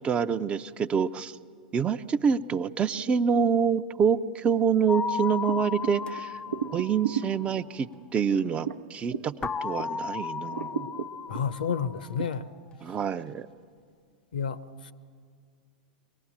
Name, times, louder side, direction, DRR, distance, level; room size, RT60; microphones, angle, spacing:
voice 1, 0.0-1.4 1.7-6.3 6.7-9.3 9.6-10.9 12.8-13.5, right 6 dB, 25° right, 12 dB, 0.5 m, -26 dB
sound 1, 4.9-7.7 9.4-12.2, left 5 dB, 20° left, 0.6 m, -35 dB
sound 2, 5.5-10.1 10.4-12.3, right 7 dB, 80° right, 0.7 m, -36 dB
voice 2, 11.3-12.5 14.3-14.9, left 7 dB, 80° left, 16 dB, 0.8 m, -30 dB
24.5 x 18.5 x 7.3 m, 2.1 s
hypercardioid pair, 105°, 5 cm